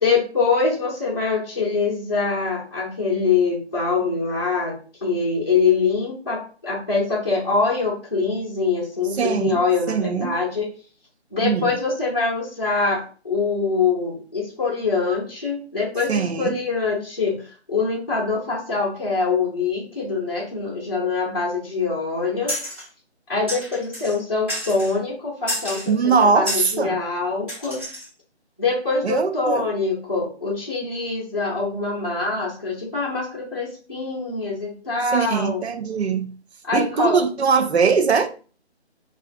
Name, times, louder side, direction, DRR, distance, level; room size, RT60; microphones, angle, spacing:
voice 1, 0.0-10.7 11.3-17.4 17.7-22.6 23.3-27.8 28.6-35.6 36.6-37.2, left 4 dB, 20° left, 0.6 m, -24 dB
voice 2, 9.1-9.6 9.9-10.3 11.4-11.7 16.1-16.6 25.9-27.0 29.0-29.7 35.1-36.3 36.7-38.3, right 5 dB, 70° right, 0.6 m, -21 dB
sound 1, 22.5-22.9 23.5-24.2 24.5-24.9 25.5-25.9 26.5-26.7 27.5-28.1, equal, 10° right, 0.9 m, -30 dB
4.5 x 2.4 x 2.3 m
figure-of-eight pair, 165°, 34 cm